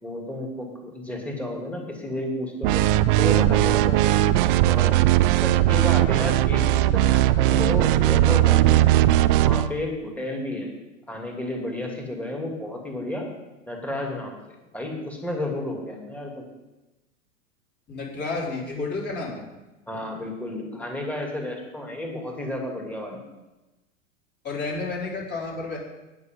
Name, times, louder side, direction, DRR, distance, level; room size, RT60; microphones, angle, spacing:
voice 1, 0.0-2.8 3.2-4.1 4.7-5.0 5.4-9.0 9.4-10.7 11.1-13.3 13.7-14.3 14.7-16.5 19.9-23.2, left 1 dB, 5° left, 0 dB, 2.7 m, -32 dB
sound 1, 2.6-9.7, right 14 dB, 45° right, 0.5 m, -19 dB
voice 2, 17.9-19.4 24.4-25.8, left 3 dB, 25° left, -3 dB, 4.2 m, -31 dB
19.0 x 6.7 x 3.8 m, 1.1 s
figure-of-eight pair, 95°, 39 cm